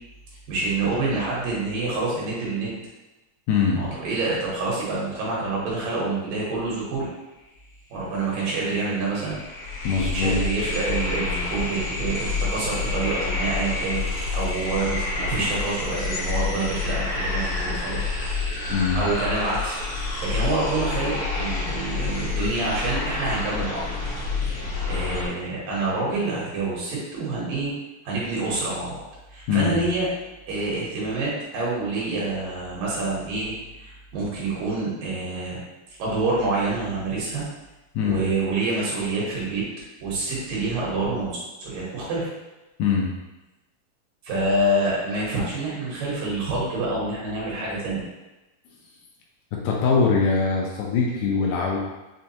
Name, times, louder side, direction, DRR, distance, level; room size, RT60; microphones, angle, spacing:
voice 1, 0.5-2.7 3.7-7.1 7.9-9.4 10.1-18.1 18.9-19.8 20.2-23.9 24.9-27.7 28.0-29.0 29.3-30.1 30.5-33.6 33.8-35.6 36.0-37.4 38.0-39.6 40.0-42.3 44.2-48.0, right 2 dB, 75° right, -6 dB, 2.8 m, -27 dB
voice 2, 3.5-3.8 9.8-10.4 18.7-19.0 29.5-29.8 38.0-38.2 42.8-43.1 49.5-51.8, left 5 dB, 80° left, -2 dB, 2.2 m, -22 dB
sound 1, 8.3-8.4 8.6-25.3, left 3 dB, 65° left, 1.4 m, -28 dB
6.3 x 2.3 x 2.8 m, 1.0 s
omnidirectional pair, 4.0 m